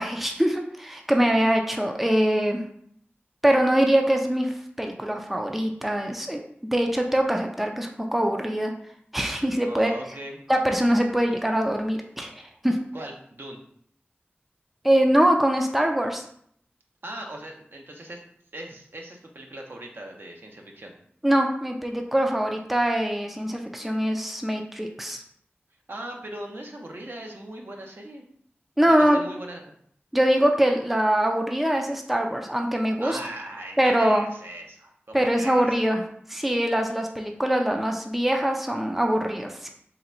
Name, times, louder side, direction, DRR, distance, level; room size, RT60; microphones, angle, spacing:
voice 1, 0.0-2.6 3.4-4.5 4.8-6.4 6.7-8.7 9.1-9.9 10.5-12.8 14.8-16.2 21.2-25.2 28.8-29.2 30.1-33.2 33.8-34.3 35.1-36.0 36.3-39.7, right 1 dB, 5° right, 3 dB, 0.4 m, -23 dB
voice 2, 9.6-10.4 12.9-13.6 17.0-18.2 18.5-20.9 25.9-28.2 28.8-29.7 33.0-35.8, right 1 dB, 60° right, 1 dB, 0.7 m, -39 dB
3.8 x 2.2 x 4.3 m, 0.65 s
wide cardioid pair, 60°, 4 cm